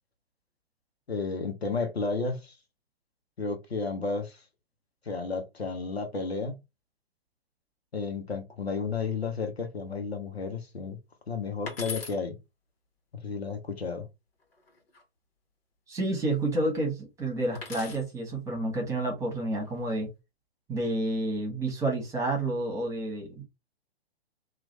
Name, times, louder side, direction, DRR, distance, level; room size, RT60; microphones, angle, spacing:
voice 1, 1.1-2.5 3.4-4.4 5.0-6.6 7.9-11.0 11.3-12.4 13.2-14.1, left 4 dB, 80° left, 0.9 m, -32 dB
sound 1, 11.7-12.2 14.4-15.0 17.6-18.1 19.4-19.8, left 4 dB, 65° left, 1.2 m, -40 dB
voice 2, 15.9-20.1 20.7-23.4, right 2 dB, 10° right, 1.3 m, -30 dB
3.0 x 2.5 x 3.9 m
figure-of-eight pair, 120°, 31 cm